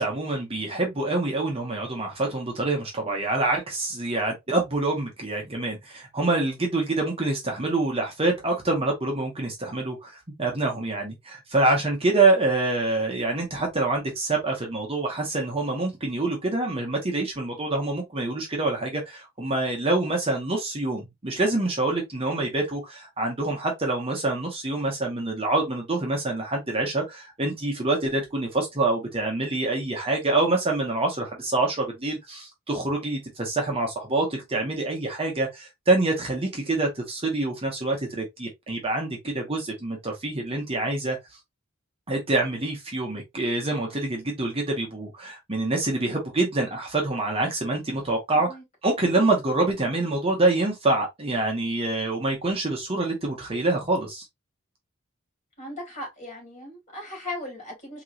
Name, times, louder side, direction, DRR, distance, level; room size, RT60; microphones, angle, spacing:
voice 1, 0.0-41.4 42.1-48.5 48.8-54.2, right 2 dB, 25° right, 1.1 m, -26 dB
voice 2, 55.6-58.0, left 1 dB, 35° left, 2.9 m, -37 dB
4.5 x 3.0 x 2.4 m
head